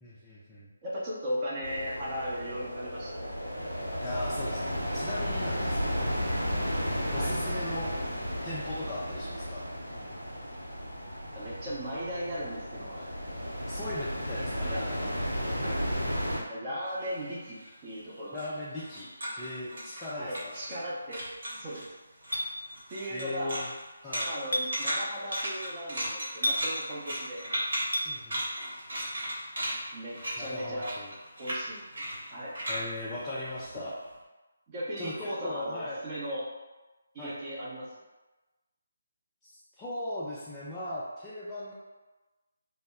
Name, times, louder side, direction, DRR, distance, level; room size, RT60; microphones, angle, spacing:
voice 1, 0.0-0.7 4.0-6.2 7.0-7.9 8.4-9.7 13.7-15.1 18.3-19.1 19.4-20.5 23.1-23.7 24.0-24.3 28.0-28.4 30.4-31.1 32.7-33.9 35.0-36.0 37.2-37.4 39.4-41.7, left 1 dB, 10° left, -10 dB, 0.4 m, -38 dB
voice 2, 0.8-3.3 7.1-7.4 11.3-13.2 14.6-14.8 15.6-15.8 16.5-18.4 20.2-21.2 21.6-21.9 22.9-23.6 24.3-27.4 29.9-30.9 31.4-31.8 32.3-32.6 34.7-36.5 37.1-37.9, equal, 25° right, -7 dB, 0.7 m, -37 dB
sound 1, 1.6-16.4, equal, 90° right, 0.7 m, -33 dB
sound 2, 16.9-20.9 21.1-21.9 22.2-34.0, equal, 55° right, 1.0 m, -36 dB
Chink clink, 22.3-22.5 24.5-24.7 26.4-26.6 27.9-28.1, left 1 dB, 75° left, 0.4 m, -28 dB
2.0 x 2.0 x 3.4 m, 1.1 s
figure-of-eight pair, 150°, 0 cm